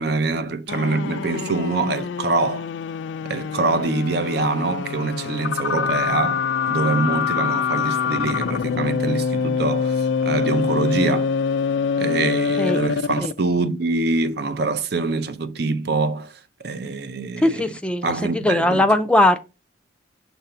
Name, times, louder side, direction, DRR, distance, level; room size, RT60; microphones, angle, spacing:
voice 1, 0.0-2.7 3.2-11.3 12.0-18.9, right 3 dB, 60° right, 0.6 m, -24 dB
sound 1, 0.7-13.4, left 6 dB, 80° left, 0.3 m, -24 dB
voice 2, 17.4-19.4, left 1 dB, 5° left, 0.5 m, -19 dB
6.6 x 2.6 x 5.4 m
head